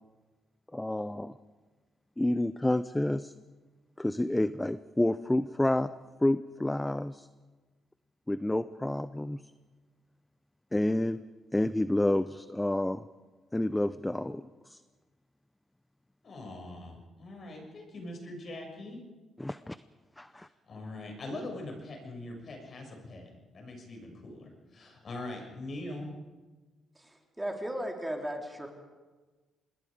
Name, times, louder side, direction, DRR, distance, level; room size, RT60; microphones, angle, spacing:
voice 1, 0.7-1.3 2.2-3.3 4.0-5.9 6.2-7.3 8.3-9.4 10.7-11.2 11.5-13.0 13.5-14.8 19.4-19.8 20.2-20.5, left 1 dB, 10° left, 13 dB, 0.6 m, -29 dB
voice 2, 16.2-19.0 20.3-26.1, left 2 dB, 45° left, 2 dB, 6.7 m, -42 dB
voice 3, 27.4-28.7, equal, 10° right, 1 dB, 3.8 m, -35 dB
26.0 x 21.5 x 5.1 m, 1.3 s
cardioid pair, 90°, 0 cm